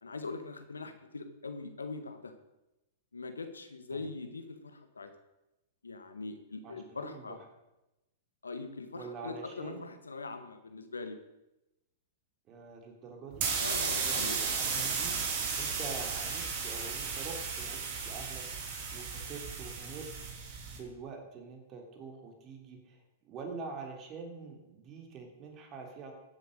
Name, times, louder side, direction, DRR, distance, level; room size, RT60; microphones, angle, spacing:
voice 1, 0.0-2.3 3.1-5.1 5.8-7.4 8.4-11.2 13.6-14.4, left 3 dB, 90° left, 8 dB, 1.5 m, -42 dB
voice 2, 6.6-7.4 8.9-9.9 12.5-13.5 14.0-15.2 15.6-20.1 20.7-26.1, right 4 dB, 35° right, 2 dB, 3.1 m, -45 dB
sound 1, 13.3-20.8, right 5 dB, 50° right, 3.1 m, -34 dB
14.5 x 8.0 x 6.6 m, 0.96 s
hypercardioid pair, 110°, 0 cm